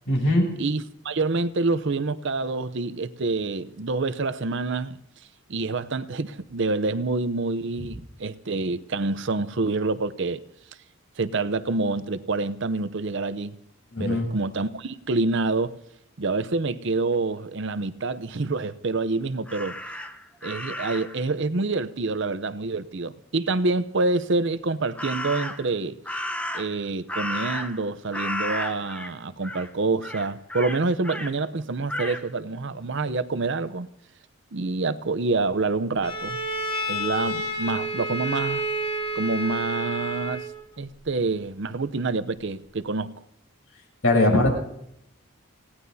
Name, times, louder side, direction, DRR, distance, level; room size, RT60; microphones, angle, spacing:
voice 1, 0.1-0.5 13.9-14.3 44.0-44.5, left 1 dB, 70° left, 7.8 m, -20 dB
voice 2, 0.6-5.0 5.5-10.4 11.2-13.6 14.0-15.8 16.2-19.8 20.4-26.0 26.5-33.9 34.5-36.4 36.9-38.6 39.1-40.5 40.8-43.1, right 3 dB, 60° right, 0.7 m, -27 dB
Crow, 19.5-21.2 25.0-25.7 26.1-27.9 28.1-29.1 29.4-29.7 30.0-31.3 31.9-32.2, left 1 dB, 5° left, 0.9 m, -33 dB
Bowed string instrument, 36.0-40.6, right 1 dB, 25° left, 2.6 m, -29 dB
28.5 x 17.5 x 2.8 m
head